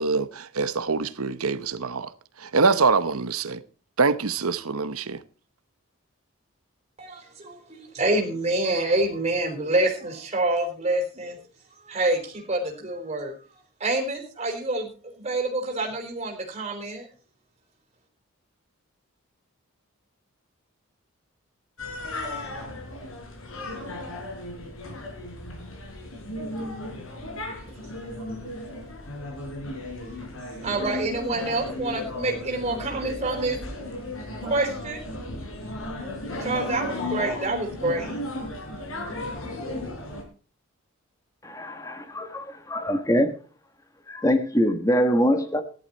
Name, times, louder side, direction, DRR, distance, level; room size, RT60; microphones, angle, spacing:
voice 1, 0.0-2.1 2.4-3.6 4.0-5.2, right 4 dB, 80° right, 0.9 m, -24 dB
voice 2, 7.0-11.4 11.7-17.1 28.2-28.3 30.0-30.2 30.6-33.6 34.4-35.0 36.4-38.2, right 2 dB, 30° right, 4.0 m, -27 dB
sound 1, 21.8-40.2, left 1 dB, 65° left, 4.1 m, -35 dB
voice 3, 41.4-43.4 44.1-45.6, equal, 15° left, 1.5 m, -23 dB
14.0 x 12.0 x 4.3 m
head